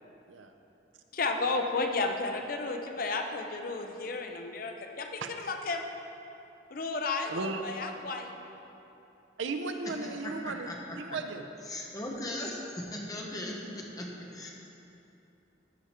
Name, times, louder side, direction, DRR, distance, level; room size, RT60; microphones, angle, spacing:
voice 1, 1.1-5.9 6.7-8.3, left 3 dB, 50° left, 4 dB, 0.6 m, -33 dB
voice 2, 5.2-5.5 7.3-7.6 9.4-11.4, right 3 dB, 80° right, 7 dB, 0.6 m, -36 dB
voice 3, 10.0-10.8 11.7-14.5, left 1 dB, 20° left, -1 dB, 1.0 m, -38 dB
14.5 x 5.0 x 4.4 m, 2.9 s
head